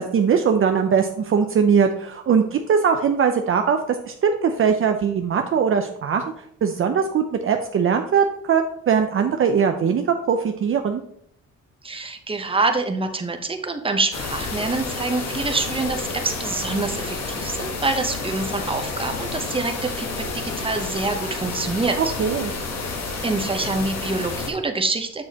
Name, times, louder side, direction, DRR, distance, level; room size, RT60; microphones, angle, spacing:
voice 1, 0.0-3.8 4.1-6.2 6.6-11.0 22.0-22.5, right 6 dB, 45° right, 5 dB, 0.6 m, -20 dB
voice 2, 11.8-22.0 23.2-25.2, right 3 dB, 20° right, 6 dB, 0.9 m, -26 dB
sound 1, 14.1-24.5, left 3 dB, 60° left, 1.4 m, -30 dB
7.4 x 6.3 x 2.9 m, 0.69 s
cardioid pair, 90°, 30 cm